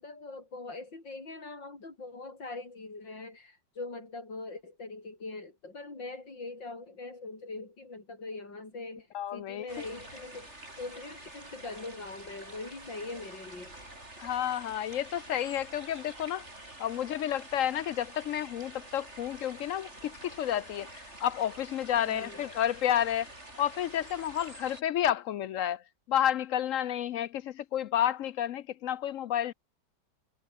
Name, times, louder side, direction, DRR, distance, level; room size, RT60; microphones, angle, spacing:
voice 1, 0.0-9.1 9.3-13.9 22.0-22.4, left 3 dB, 90° left, 6.2 m, -42 dB
voice 2, 9.1-9.7 14.2-16.5 16.8-23.3 23.6-25.8 26.1-29.5, left 10 dB, 70° left, 0.7 m, -30 dB
sound 1, 9.7-24.8, right 1 dB, 35° right, 7.5 m, -48 dB
omnidirectional pair, 1.9 m